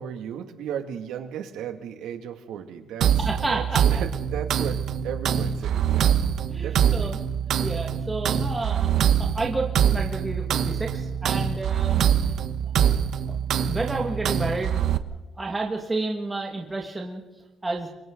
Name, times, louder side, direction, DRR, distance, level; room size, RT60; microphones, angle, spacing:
voice 1, 0.0-3.2 3.5-6.2 6.6-7.1, right 8 dB, 75° right, 5 dB, 2.3 m, -35 dB
sound 1, 3.0-15.0, right 9 dB, 55° right, 1.0 m, -24 dB
voice 2, 3.2-3.8 6.5-7.2 7.6-12.0 13.3-13.4 13.7-14.9 15.4-17.2 17.6-17.9, right 3 dB, 10° right, 0 dB, 2.0 m, -30 dB
28.5 x 24.5 x 4.0 m, 1.1 s
cardioid pair, 165°, 0 cm